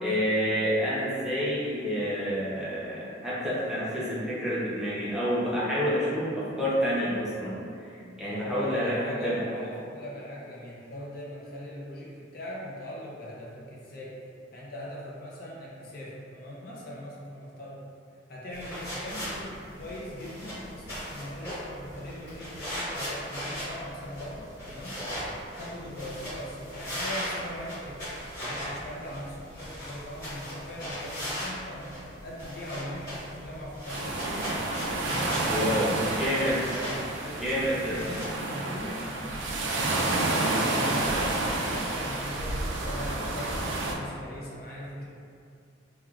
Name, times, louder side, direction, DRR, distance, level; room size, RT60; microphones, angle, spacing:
voice 1, 0.0-9.3 35.5-36.6 37.4-38.0 40.4-40.7, equal, 5° right, -9 dB, 0.6 m, -29 dB
voice 2, 8.3-14.2 14.5-17.9 18.3-25.1 25.6-28.0 28.4-34.5 34.9-36.9 37.2-41.2 41.6-45.0, left 1 dB, 55° left, -5 dB, 0.6 m, -40 dB
sound 1, 18.5-38.4, equal, 20° left, 1.4 m, -38 dB
sound 2, 33.9-43.9, right 2 dB, 85° right, 0.3 m, -30 dB
3.3 x 2.3 x 2.3 m, 2.4 s
head